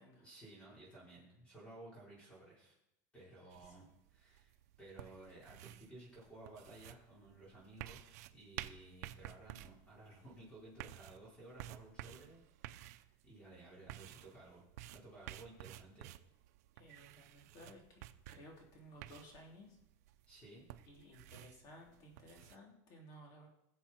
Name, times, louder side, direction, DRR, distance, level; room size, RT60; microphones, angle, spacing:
voice 1, 0.2-2.8 3.1-14.6 14.9-16.1 20.2-20.7, right 2 dB, 15° left, -5 dB, 4.8 m, -56 dB
sound 1, 3.5-22.6, right 14 dB, 80° right, 0.6 m, -53 dB
voice 2, 3.6-3.9 16.8-18.0 18.3-19.8 20.9-23.5, equal, 45° left, 0 dB, 3.5 m, -57 dB
20.5 x 7.8 x 4.4 m, 0.86 s
supercardioid pair, 150°, 9 cm